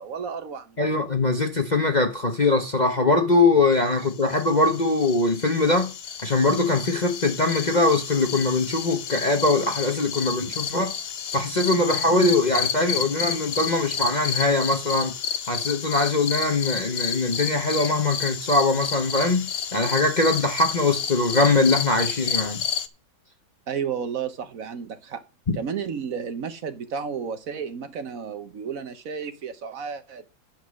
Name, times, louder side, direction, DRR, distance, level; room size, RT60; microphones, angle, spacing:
voice 1, 0.0-0.8 23.7-25.2 25.6-30.2, right 6 dB, 55° right, 1.1 m, -32 dB
voice 2, 0.8-5.9 6.2-10.9 11.3-15.1 15.5-22.6, left 2 dB, 35° left, 0.7 m, -22 dB
sound 1, 4.0-22.9, left 7 dB, 85° left, 0.5 m, -31 dB
10.5 x 5.8 x 6.2 m
omnidirectional pair, 2.2 m